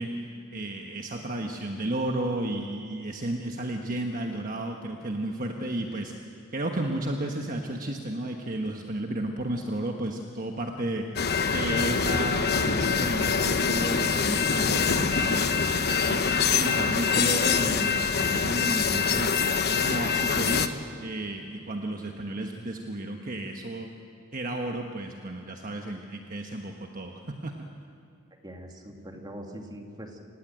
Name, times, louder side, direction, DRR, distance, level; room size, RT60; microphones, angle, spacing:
voice 1, 0.0-6.1 6.5-19.4 19.8-23.9 24.3-27.7, right 1 dB, 40° right, 3 dB, 1.2 m, -33 dB
sound 1, 11.2-20.7, left 5 dB, 50° left, 1.0 m, -25 dB
voice 2, 28.4-30.2, equal, 20° right, 2 dB, 2.4 m, -42 dB
27.5 x 15.5 x 9.1 m, 2.5 s
head